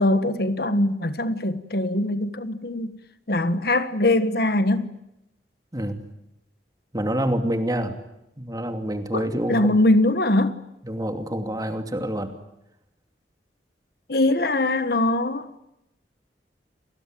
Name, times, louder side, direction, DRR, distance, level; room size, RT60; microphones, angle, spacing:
voice 1, 0.0-3.0 3.3-4.9 9.1-10.6 14.1-15.5, left 1 dB, 60° left, 1.5 m, -22 dB
voice 2, 5.7-6.0 6.9-8.0 8.4-9.7 10.8-12.3, right 1 dB, 20° right, 2.7 m, -27 dB
30.0 x 20.5 x 9.2 m
head